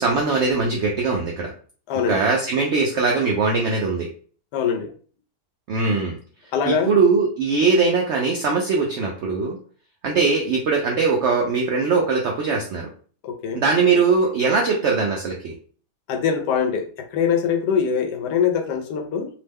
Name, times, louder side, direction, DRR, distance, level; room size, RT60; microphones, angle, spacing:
voice 1, 0.0-1.5 2.1-4.1 5.7-6.2 6.7-9.6 10.0-12.9 13.5-15.5, right 4 dB, 80° right, 0 dB, 0.6 m, -21 dB
voice 2, 1.9-2.2 4.5-4.9 6.5-6.9 13.2-13.6 16.1-19.3, left 7 dB, 85° left, 5 dB, 1.2 m, -23 dB
2.9 x 2.1 x 3.3 m, 0.43 s
omnidirectional pair, 1.7 m